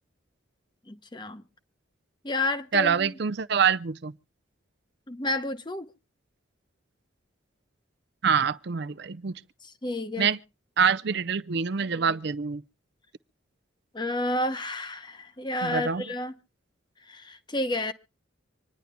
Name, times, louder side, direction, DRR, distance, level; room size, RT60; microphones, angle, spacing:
voice 1, 0.9-1.4 2.2-3.2 5.1-5.9 9.6-10.3 13.9-16.3 17.0-17.9, left 1 dB, 20° left, 0.8 m, -31 dB
voice 2, 2.7-4.1 8.2-9.3 10.2-10.4 10.8-12.6 15.6-16.0, right 6 dB, 55° right, 0.5 m, -25 dB
26.0 x 10.5 x 2.2 m
head